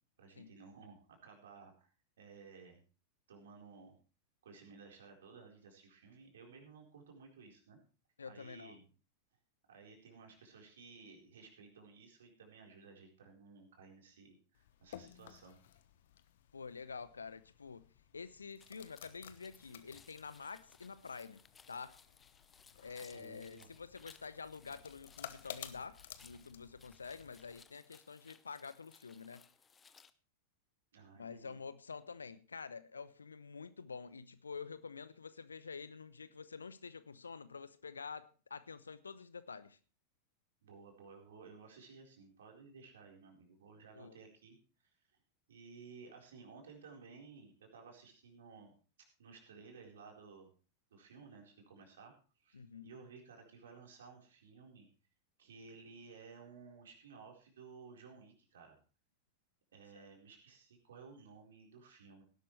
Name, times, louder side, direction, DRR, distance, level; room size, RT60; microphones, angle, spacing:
voice 1, 0.2-1.9 2.2-2.8 3.3-4.0 4.4-7.8 8.2-8.9 9.7-15.6 23.0-23.7 30.9-31.6 40.6-44.6 45.5-48.7 49.2-50.5 50.9-54.9 55.4-58.8 59.7-62.2, right 5 dB, 65° right, 1 dB, 4.2 m, -56 dB
voice 2, 8.2-8.8 16.5-21.9 22.8-29.5 31.1-39.8 43.9-44.2 52.5-52.9 59.9-60.1, left 5 dB, 75° left, 15 dB, 0.8 m, -48 dB
sound 1, 14.5-27.6, left 11 dB, 60° left, 1.1 m, -55 dB
sound 2, 18.6-30.1, left 6 dB, 20° left, 0.8 m, -63 dB
18.0 x 11.5 x 3.2 m, 0.36 s
figure-of-eight pair, 90°, 0 cm